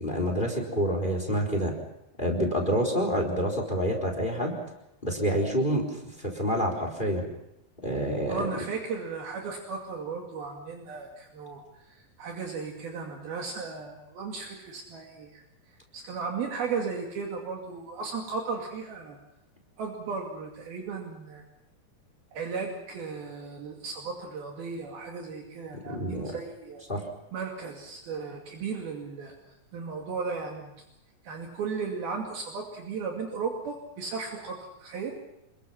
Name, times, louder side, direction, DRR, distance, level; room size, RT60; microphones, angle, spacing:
voice 1, 0.0-1.7 2.2-4.6 5.0-6.0 6.2-7.2 7.8-8.5 25.9-26.3 26.9-27.0, equal, 10° left, 3 dB, 3.9 m, -27 dB
voice 2, 8.3-15.4 15.9-19.2 19.8-21.4 22.3-26.8 27.3-29.4 29.7-30.7 31.2-35.1, right 5 dB, 65° right, 0 dB, 4.1 m, -35 dB
28.5 x 22.0 x 5.8 m, 0.83 s
omnidirectional pair, 4.6 m